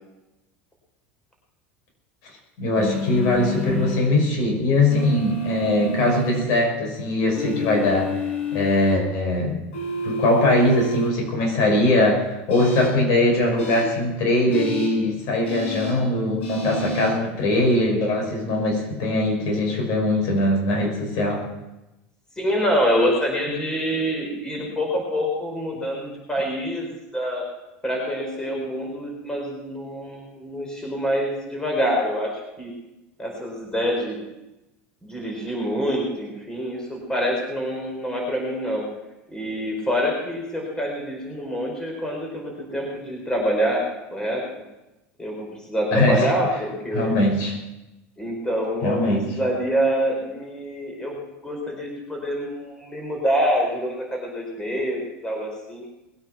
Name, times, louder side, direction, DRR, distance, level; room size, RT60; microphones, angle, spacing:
voice 1, 2.6-8.3 8.5-9.6 10.0-21.5 45.9-46.3 46.9-47.5 48.8-49.3, left 1 dB, 60° left, 0 dB, 6.0 m, -21 dB
sound 1, 2.7-4.0 4.9-6.4 7.3-9.0 9.7-11.1 12.5-12.9 13.6-13.8 14.5-14.9 15.4-15.9 16.4-17.1, left 1 dB, 90° left, 7.3 m, -28 dB
voice 2, 22.4-27.4 27.8-32.3 32.6-32.7 33.2-34.2 35.0-38.8 39.3-43.8 44.1-44.4 45.2-47.2 48.2-51.2 51.4-55.9, equal, 10° left, 0 dB, 4.8 m, -26 dB
20.5 x 9.0 x 6.0 m, 0.97 s
supercardioid pair, 120°, 6 cm